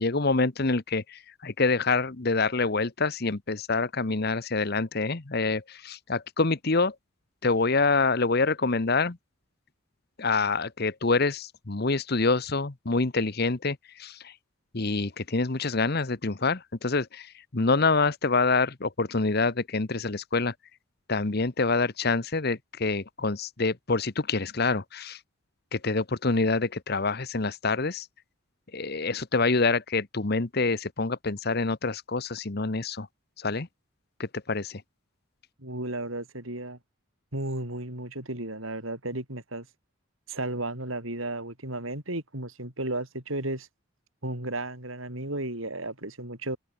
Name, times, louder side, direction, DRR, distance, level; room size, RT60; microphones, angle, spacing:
voice 1, 0.0-6.9 7.4-9.2 10.2-14.3 14.7-20.5 21.1-25.2 25.7-28.1 28.7-33.1 33.4-33.7 34.2-34.8, left 3 dB, 50° left, 1.1 m, -26 dB
voice 2, 35.6-36.8 37.3-39.7 40.3-43.7 44.2-46.6, right 2 dB, 75° right, 7.8 m, -34 dB
head